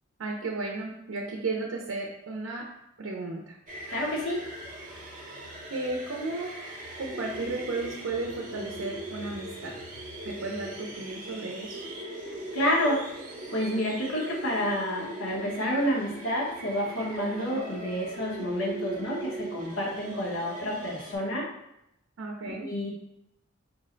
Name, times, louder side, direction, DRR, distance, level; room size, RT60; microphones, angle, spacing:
voice 1, 0.2-2.7 3.0-3.6 5.7-6.5 7.0-9.8 10.2-11.8 17.5-17.6 22.2-22.7, right 3 dB, 85° right, 0 dB, 0.6 m, -34 dB
sound 1, 3.7-21.1, right 1 dB, 40° right, 0.8 m, -40 dB
voice 2, 3.9-4.4 12.5-13.1 13.5-21.5 22.6-22.9, equal, 75° left, -4 dB, 1.2 m, -29 dB
4.5 x 2.2 x 3.8 m, 0.82 s
head